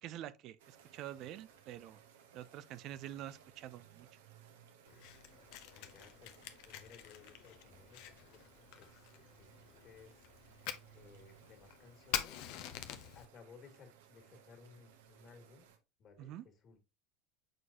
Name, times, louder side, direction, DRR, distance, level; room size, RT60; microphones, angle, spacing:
voice 1, 0.0-2.0 2.3-4.1 16.2-16.4, right 12 dB, 50° right, 0.4 m, -47 dB
sound 1, 0.6-15.8, right 8 dB, 70° right, 1.1 m, -62 dB
Fire, 4.9-13.3, left 11 dB, 60° left, 0.8 m, -46 dB
voice 2, 5.7-8.4 8.7-10.7 10.9-12.5 12.9-15.7 16.0-16.8, left 5 dB, 40° left, 2.2 m, -60 dB
7.6 x 4.6 x 2.8 m
hypercardioid pair, 80°, 0 cm